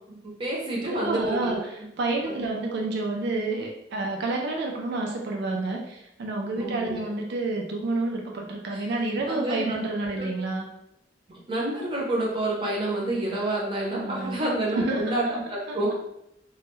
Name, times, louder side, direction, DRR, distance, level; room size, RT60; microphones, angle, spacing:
voice 1, 0.1-1.6 2.3-2.4 6.6-7.1 8.7-8.8 9.2-9.7 10.0-10.3 11.5-15.9, right 1 dB, 25° right, -4 dB, 0.7 m, -29 dB
voice 2, 0.9-10.7 13.9-14.4 14.7-15.1 15.7-15.9, right 2 dB, 60° right, 1 dB, 0.4 m, -29 dB
2.2 x 2.1 x 3.0 m, 0.80 s
head